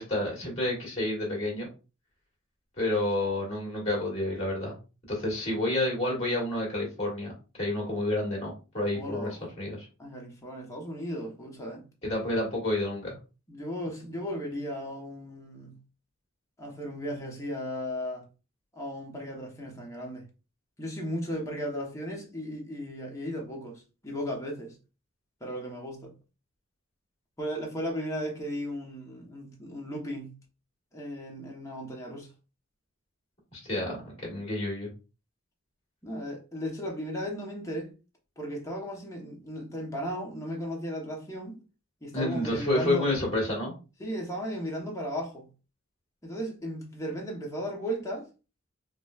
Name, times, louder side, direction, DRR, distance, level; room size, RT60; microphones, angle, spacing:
voice 1, 0.0-1.7 2.8-4.7 5.1-7.3 7.6-9.9 12.0-13.1 33.5-34.9 42.1-43.8, left 1 dB, 30° left, 1.5 m, -29 dB
voice 2, 8.9-9.4 10.0-11.9 13.5-15.8 16.6-18.2 18.7-20.3 20.8-24.8 25.4-26.1 27.4-30.4 30.9-32.3 36.0-37.9 38.4-41.6 42.0-43.1 44.0-45.5 46.2-48.3, equal, 15° left, 0.9 m, -36 dB
4.8 x 2.1 x 2.3 m
head